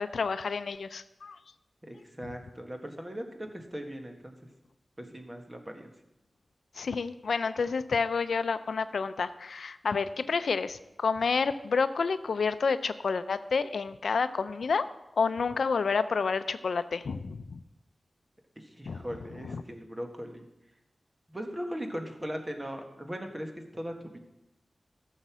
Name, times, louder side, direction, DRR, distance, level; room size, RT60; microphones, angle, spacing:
voice 1, 0.0-1.4 6.8-14.9 15.2-17.6 18.9-19.0 19.4-19.6, left 5 dB, 90° left, 12 dB, 0.5 m, -29 dB
voice 2, 1.8-4.4 5.0-5.9 18.5-20.4 21.3-24.2, equal, 20° right, 4 dB, 1.6 m, -39 dB
14.0 x 6.6 x 6.1 m, 0.92 s
wide cardioid pair, 90°, 0 cm